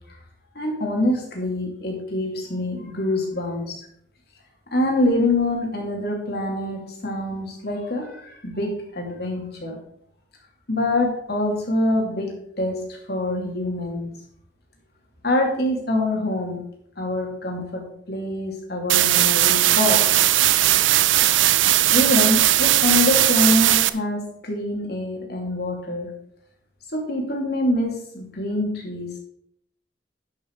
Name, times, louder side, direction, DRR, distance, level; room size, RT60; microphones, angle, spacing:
voice 1, 0.5-3.9 4.7-9.8 10.7-14.1 15.2-16.6 17.0-20.2 21.9-26.1 26.9-29.2, left 1 dB, 55° left, 1 dB, 2.6 m, -25 dB
sound 1, 18.9-23.9, right 14 dB, 90° right, 0.5 m, -18 dB
11.0 x 6.2 x 4.7 m, 0.70 s
head